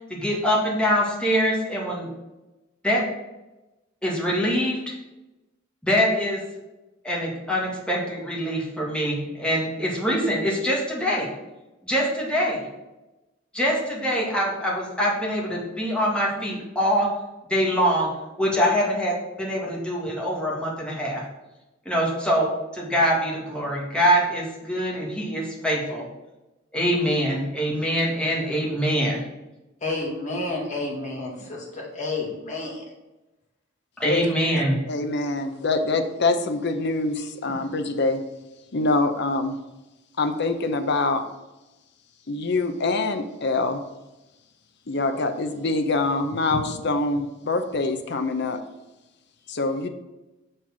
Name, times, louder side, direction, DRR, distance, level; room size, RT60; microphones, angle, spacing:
voice 1, 0.1-2.1 2.8-3.1 4.0-4.9 5.8-6.4 7.0-11.3 11.8-12.7 13.5-17.1 17.5-18.1 18.4-21.2 21.9-26.1 26.7-29.2 34.0-34.8, equal, 5° left, -4 dB, 1.8 m, -24 dB
voice 2, 29.8-32.8, left 2 dB, 40° left, -2 dB, 2.1 m, -30 dB
voice 3, 34.0-38.2 38.7-39.6 40.2-41.2 42.3-43.8 44.9-48.6 49.5-49.9, left 3 dB, 60° left, 8 dB, 0.8 m, -25 dB
6.6 x 4.5 x 6.0 m, 1.0 s
head